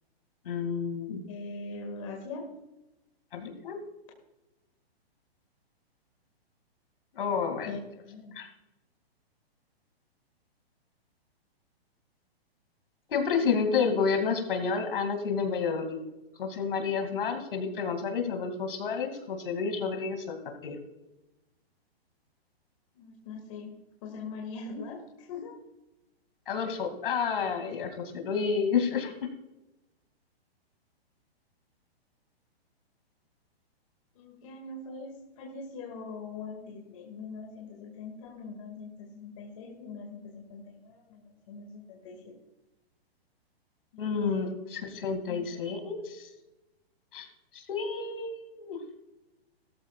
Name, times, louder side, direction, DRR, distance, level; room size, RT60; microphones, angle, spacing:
voice 1, 0.4-1.2 3.3-3.8 7.1-7.8 8.3-8.5 13.1-16.0 16.3-20.3 20.6-20.8 26.5-29.3 44.0-46.3 47.1-47.3 47.5-48.8, left 5 dB, 60° left, 5 dB, 2.6 m, -30 dB
voice 2, 1.3-2.5 7.7-7.8 8.0-8.3 23.0-23.7 24.0-25.6 34.2-42.4 43.9-44.6 45.3-45.6, left 4 dB, 30° left, 0 dB, 2.1 m, -42 dB
17.0 x 13.5 x 2.4 m, 0.98 s
hypercardioid pair, 175°, 31 cm